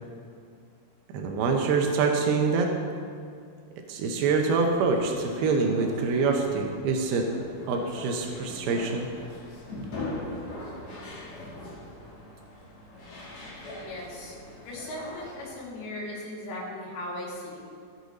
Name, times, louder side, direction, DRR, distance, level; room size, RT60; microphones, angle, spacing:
voice 1, 1.1-2.7 3.9-7.3 7.7-9.1, right 4 dB, 90° right, 3 dB, 2.2 m, -25 dB
sound 1, 4.5-15.5, left 2 dB, 50° left, 1.7 m, -41 dB
voice 2, 13.7-14.3 14.6-17.6, left 1 dB, 80° left, -4 dB, 4.8 m, -38 dB
17.5 x 6.4 x 4.0 m, 2.3 s
omnidirectional pair, 5.6 m